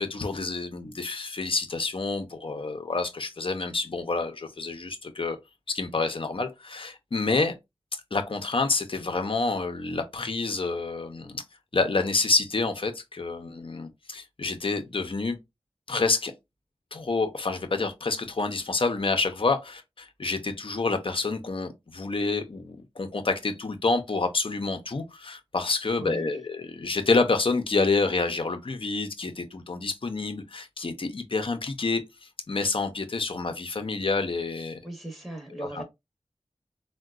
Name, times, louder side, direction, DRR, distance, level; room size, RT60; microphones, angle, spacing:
voice 1, 0.0-5.4 5.7-7.5 8.1-11.4 11.7-15.4 15.9-16.3 16.9-34.8 35.6-35.8, left 3 dB, 55° left, 0.6 m, -28 dB
voice 2, 26.0-26.4 34.8-35.8, right 2 dB, ahead, 0.9 m, -38 dB
3.7 x 2.2 x 2.3 m
wide cardioid pair, 45°, 11 cm